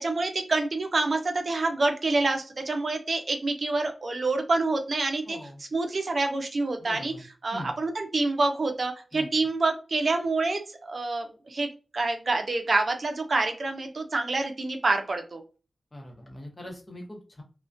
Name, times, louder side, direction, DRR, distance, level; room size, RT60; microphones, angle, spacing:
voice 1, 0.0-11.7 11.9-15.4, right 3 dB, 60° right, 5 dB, 0.4 m, -27 dB
voice 2, 5.3-5.6 6.8-7.2 7.5-7.7 9.1-9.3 15.9-17.4, left 1 dB, 30° left, 1 dB, 0.8 m, -42 dB
2.4 x 2.1 x 2.4 m, 0.34 s
wide cardioid pair, 85°, 0 cm